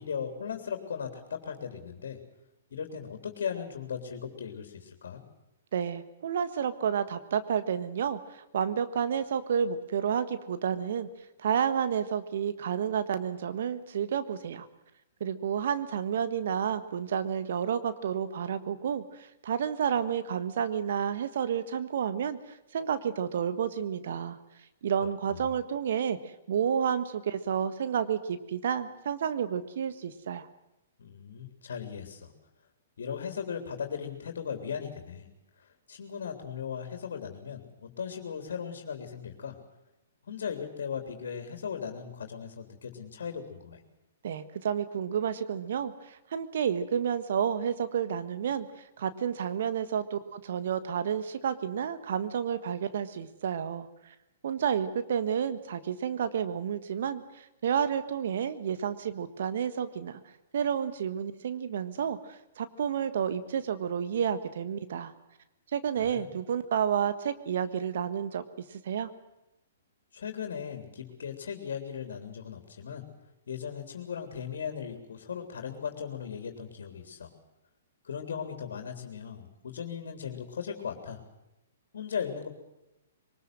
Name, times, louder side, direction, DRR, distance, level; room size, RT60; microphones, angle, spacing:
voice 1, 0.0-2.2 2.7-5.2 25.3-25.6 31.0-32.3 33.0-35.3 35.6-39.6 40.3-43.8 66.0-66.3 70.1-73.0 73.5-77.3 78.0-81.2 81.9-82.5, left 7 dB, 70° left, 6 dB, 3.4 m, -37 dB
voice 2, 5.7-11.1 11.4-14.7 15.2-24.4 24.8-26.2 26.5-30.5 44.2-54.1 54.4-60.2 60.5-65.1 65.7-68.4 68.7-69.1, right 8 dB, 60° right, 12 dB, 1.5 m, -30 dB
23.0 x 19.5 x 7.7 m, 0.92 s
hypercardioid pair, 125°, 0 cm